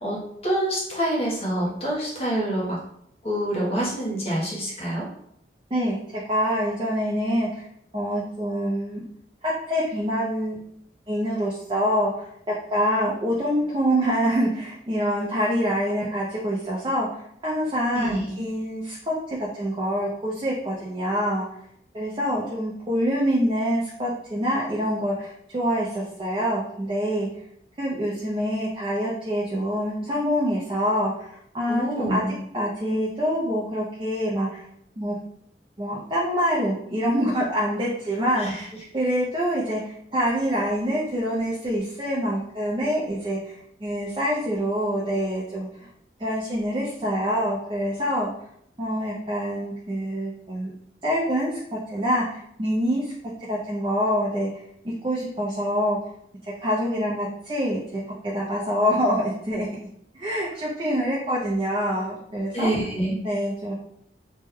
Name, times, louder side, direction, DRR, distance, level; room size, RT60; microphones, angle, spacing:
voice 1, 0.0-2.8 3.2-5.1 17.9-18.3 31.7-32.3 38.4-38.7 62.5-63.2, right 1 dB, 35° left, -4 dB, 0.9 m, -26 dB
voice 2, 5.7-7.6 7.9-9.0 9.4-10.6 11.1-12.3 12.7-21.5 21.9-27.3 27.8-32.2 32.5-34.6 35.0-35.2 35.8-45.7 46.2-48.3 48.8-50.7 51.0-53.1 53.5-54.5 55.0-56.0 56.4-57.8 58.2-59.7 60.1-62.7 63.2-63.7, equal, 25° right, -6 dB, 0.5 m, -26 dB
3.1 x 2.2 x 3.4 m, 0.71 s
head